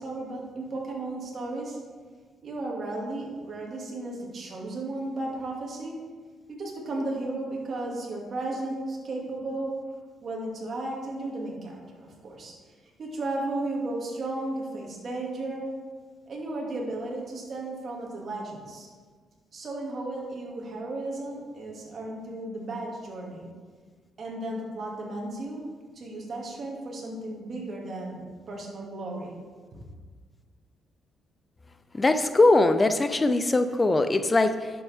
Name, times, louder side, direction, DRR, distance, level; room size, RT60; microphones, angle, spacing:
voice 1, 0.0-1.8 2.4-6.0 6.5-9.7 10.2-12.5 13.0-15.7 16.3-18.9 19.5-23.5 24.2-25.6 25.9-29.4 29.7-29.8, right 2 dB, 50° right, -2 dB, 2.3 m, -34 dB
voice 2, 31.9-34.7, left 2 dB, 25° left, 10 dB, 0.5 m, -21 dB
10.5 x 7.0 x 3.6 m, 1.5 s
cardioid pair, 90°, 0 cm